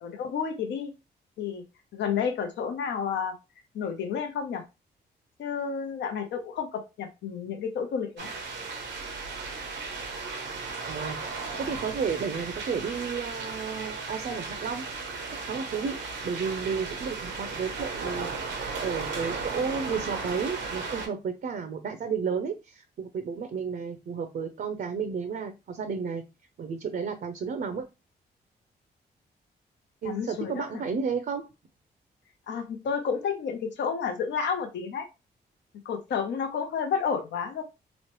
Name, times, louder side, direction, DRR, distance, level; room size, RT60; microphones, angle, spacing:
voice 1, 0.0-0.9 1.4-1.6 1.9-3.3 3.7-4.6 5.4-8.3 30.0-30.8 32.5-35.0 35.9-37.6, left 6 dB, 80° left, 5 dB, 0.6 m, -31 dB
sound 1, 8.2-21.1, right 4 dB, 90° right, 0.8 m, -35 dB
voice 2, 10.9-14.8 15.4-26.2 26.6-27.9 30.0-31.5, right 6 dB, 55° right, 8 dB, 0.5 m, -32 dB
3.0 x 2.0 x 3.0 m, 0.25 s
cardioid pair, 65°, 18 cm